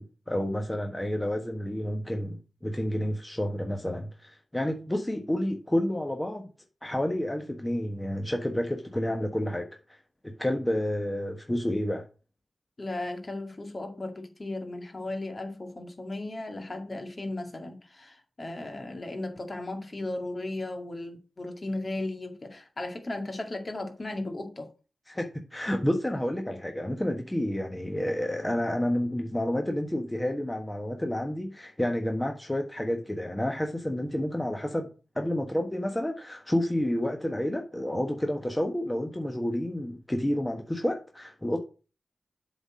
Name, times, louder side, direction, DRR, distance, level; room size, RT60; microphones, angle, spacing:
voice 1, 0.0-6.5 6.8-10.0 10.2-12.0 25.1-41.6, left 1 dB, 15° left, 1.3 m, -30 dB
voice 2, 12.8-24.7, left 2 dB, 45° left, 2.1 m, -36 dB
7.7 x 4.2 x 6.3 m
cardioid pair, 40°, 0 cm